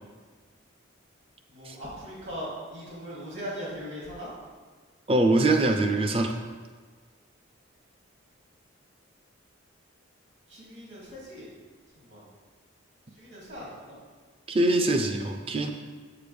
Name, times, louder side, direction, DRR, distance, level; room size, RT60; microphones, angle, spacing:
voice 1, 1.5-4.3 10.5-11.5 12.0-12.2 13.2-14.0, equal, 65° right, -7 dB, 2.2 m, -39 dB
voice 2, 5.1-6.4 14.5-15.7, right 2 dB, 25° right, 5 dB, 0.4 m, -23 dB
7.6 x 6.6 x 3.4 m, 1.5 s
head